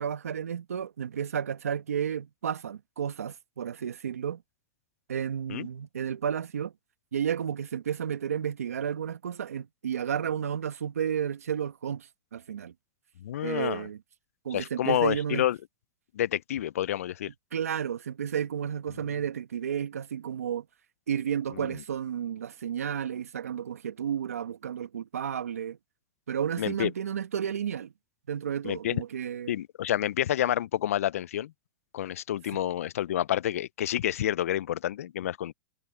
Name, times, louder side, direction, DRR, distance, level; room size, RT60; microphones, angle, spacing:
voice 1, 0.0-4.4 5.1-6.7 7.1-12.7 13.4-14.0 14.4-15.4 17.5-20.6 21.1-25.8 26.3-27.9 28.3-29.5, right 8 dB, 90° right, 1.5 m, -32 dB
voice 2, 13.2-13.9 14.5-15.6 16.1-17.3 21.5-21.8 26.6-26.9 28.6-29.0 29.5-31.5 31.9-35.5, left 12 dB, 80° left, 0.5 m, -29 dB
hypercardioid pair, 115°, 8 cm